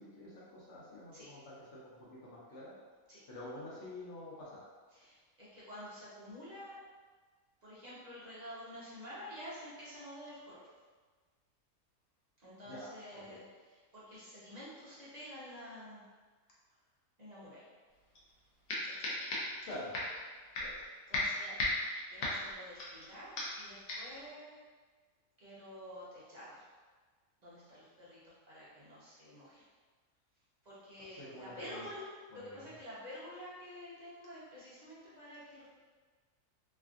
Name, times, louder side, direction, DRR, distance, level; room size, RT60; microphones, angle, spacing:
voice 1, 0.0-2.8 3.3-4.7 12.6-13.4 19.6-20.1 20.6-20.8 31.1-31.9 32.3-32.8, left 1 dB, 55° left, -6 dB, 1.1 m, -48 dB
voice 2, 4.9-6.8 7.6-10.6 12.4-16.0 17.2-17.7 19.0-19.2 20.6-20.7 21.1-24.6 25.4-26.6 27.4-29.6 30.6-32.1 32.3-35.8, equal, 45° right, -9 dB, 0.5 m, -49 dB
sound 1, 18.2-18.3 18.7-19.6 19.9-20.2 20.5-20.9 21.1-23.1 23.4-23.6 23.9-24.2, left 2 dB, 75° left, 1.2 m, -36 dB
3.4 x 2.3 x 2.4 m, 1.4 s
omnidirectional pair, 1.6 m